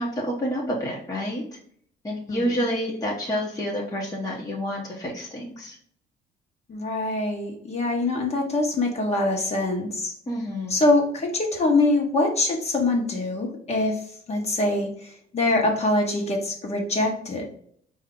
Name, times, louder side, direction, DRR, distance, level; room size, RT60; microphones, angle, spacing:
voice 1, 0.0-1.4 2.0-5.8 10.3-10.8, equal, 20° left, -3 dB, 1.1 m, -28 dB
voice 2, 2.3-2.6 6.7-10.1 10.7-17.5, left 2 dB, 40° left, 1 dB, 1.3 m, -24 dB
4.7 x 2.7 x 3.7 m, 0.62 s
cardioid pair, 110°, 17 cm